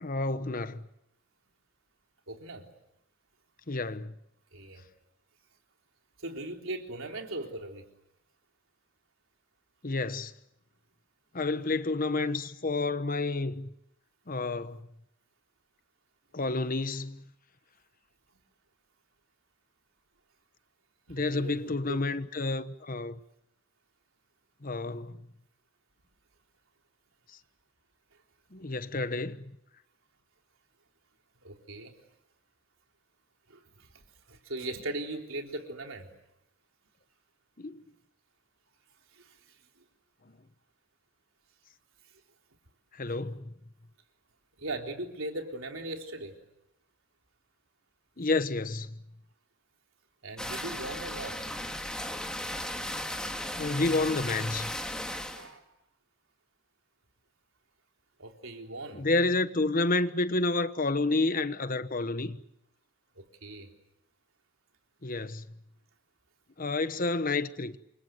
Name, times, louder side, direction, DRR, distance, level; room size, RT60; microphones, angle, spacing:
voice 1, 0.0-0.8 3.7-4.1 9.8-10.3 11.3-13.7 14.3-14.9 16.3-17.2 21.1-23.2 24.6-25.2 28.5-29.4 37.6-37.8 42.9-43.5 48.2-49.0 53.6-54.7 58.9-62.4 65.0-65.4 66.6-67.8, left 3 dB, 40° left, 1.1 m, -30 dB
voice 2, 2.3-2.7 4.5-4.8 6.2-7.9 21.1-22.0 31.4-31.9 33.5-33.9 34.3-36.1 39.1-39.4 43.1-43.2 44.6-46.3 50.2-51.5 55.3-55.7 58.2-59.1 63.2-63.7, right 2 dB, 70° right, 3.9 m, -39 dB
sound 1, 50.4-55.5, left 1 dB, 5° left, 2.4 m, -36 dB
28.5 x 25.0 x 7.9 m
head